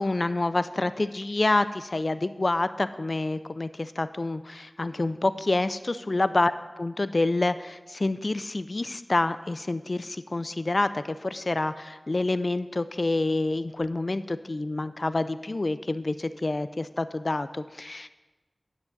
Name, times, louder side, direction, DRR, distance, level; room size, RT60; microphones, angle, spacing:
voice 1, 0.0-6.5 6.8-18.1, left 2 dB, 55° left, 13 dB, 0.3 m, -27 dB
9.6 x 9.1 x 4.0 m, 1.2 s
wide cardioid pair, 65°, 0 cm